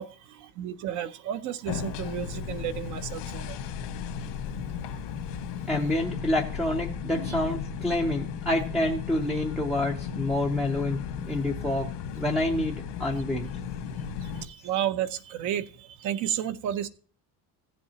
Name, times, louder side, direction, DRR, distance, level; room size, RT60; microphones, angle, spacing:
voice 1, 0.0-3.6 14.4-16.9, right 10 dB, 45° right, 13 dB, 0.7 m, -32 dB
sound 1, 1.7-14.4, left 7 dB, 85° left, 1.5 m, -35 dB
voice 2, 5.7-11.9 12.1-13.5, left 1 dB, ahead, 2 dB, 0.5 m, -28 dB
15.5 x 7.6 x 2.8 m, 0.42 s
cardioid pair, 170°, 41 cm